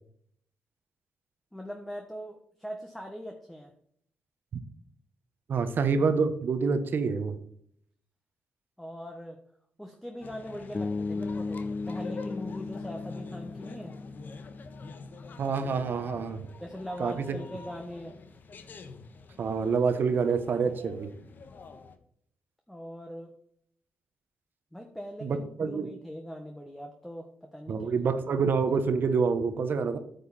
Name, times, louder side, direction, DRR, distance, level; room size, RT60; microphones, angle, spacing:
voice 1, 1.5-3.7 8.8-9.4 9.8-13.9 16.6-18.2 22.7-23.3 24.7-27.9, equal, 5° left, 3 dB, 1.3 m, -41 dB
voice 2, 5.5-7.4 15.4-16.4 17.0-17.1 19.4-21.1 25.2-25.9 27.7-30.0, right 5 dB, 65° right, 10 dB, 1.2 m, -27 dB
sound 1, 10.2-22.0, left 4 dB, 55° left, 1.2 m, -46 dB
Bass guitar, 10.7-14.8, left 3 dB, 30° left, 0.3 m, -36 dB
9.1 x 6.7 x 4.3 m, 0.67 s
cardioid pair, 75°, 4 cm